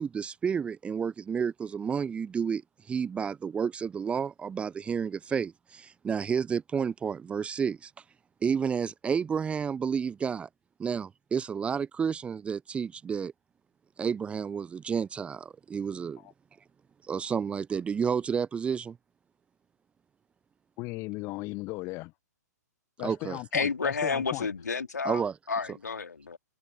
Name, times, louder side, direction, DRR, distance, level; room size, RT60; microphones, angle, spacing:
voice 1, 0.0-7.9 8.4-10.5 10.8-13.3 14.0-16.2 17.1-19.0 23.0-23.4 25.0-25.4 25.7-25.8, right 6 dB, 10° right, 1.0 m, -31 dB
voice 2, 20.8-22.1 23.0-24.5, left 23 dB, 30° left, 1.2 m, -36 dB
voice 3, 23.5-25.2 25.5-26.4, left 5 dB, 70° left, 3.4 m, -30 dB
figure-of-eight pair, 115°, 9 cm